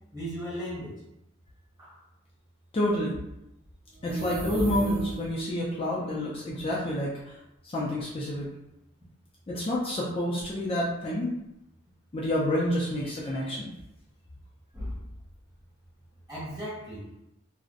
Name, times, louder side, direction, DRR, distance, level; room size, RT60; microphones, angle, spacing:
voice 1, 0.1-0.9 1.8-2.0 14.7-15.1 16.3-17.1, equal, 20° right, -9 dB, 1.1 m, -36 dB
voice 2, 2.7-3.2 4.0-7.4 7.6-8.5 9.5-11.3 12.1-13.7, left 1 dB, 30° left, -5 dB, 0.3 m, -29 dB
sound 1, 3.9-5.5, right 1 dB, 35° right, 0.5 m, -34 dB
2.5 x 2.0 x 2.5 m, 0.85 s
head